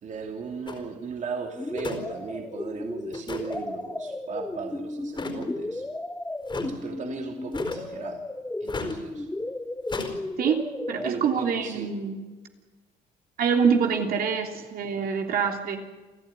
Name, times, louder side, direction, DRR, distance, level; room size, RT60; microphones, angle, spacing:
voice 1, 0.0-5.9 6.7-8.2 8.6-9.3 11.0-11.9 14.6-14.7, right 5 dB, 45° right, 3 dB, 2.9 m, -37 dB
sound 1, 0.7-0.8 1.8-2.0 2.3-2.4 3.1-3.6 5.1-5.5 6.5-6.7 7.5-8.0 8.7-9.0 9.9-10.1, left 3 dB, 30° left, 4.5 m, -34 dB
sound 2, 1.6-11.1, left 2 dB, 10° left, 1.1 m, -34 dB
voice 2, 10.4-12.1 13.4-15.8, right 6 dB, 60° right, 3 dB, 3.2 m, -25 dB
28.5 x 14.5 x 9.9 m, 1.3 s
cardioid pair, 110°, 17 cm